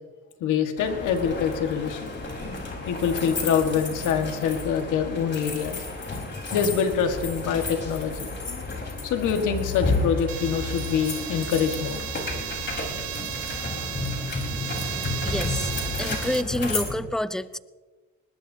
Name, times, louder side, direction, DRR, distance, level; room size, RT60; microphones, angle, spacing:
voice 1, 0.4-2.1 2.9-5.8 6.5-8.3 9.0-12.0, left 7 dB, 85° left, 6 dB, 1.7 m, -25 dB
sound 1, 0.8-16.9, left 3 dB, 35° left, 4.4 m, -31 dB
sound 2, 10.3-16.4, right 13 dB, 70° right, 0.9 m, -35 dB
voice 2, 15.2-15.7 16.0-17.6, left 1 dB, ahead, 15 dB, 0.5 m, -28 dB
20.5 x 20.0 x 2.8 m, 1.3 s
cardioid pair, 90°, 30 cm